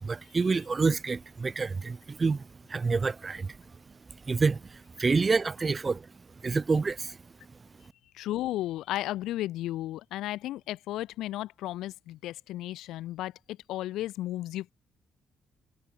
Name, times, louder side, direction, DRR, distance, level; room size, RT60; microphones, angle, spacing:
voice 1, 0.0-2.4 2.7-3.6 4.3-6.1 6.4-7.2, right 4 dB, 30° right, 2.6 m, -28 dB
voice 2, 8.1-14.7, left 15 dB, 90° left, 2.0 m, -34 dB
cardioid pair, 90°, 0 cm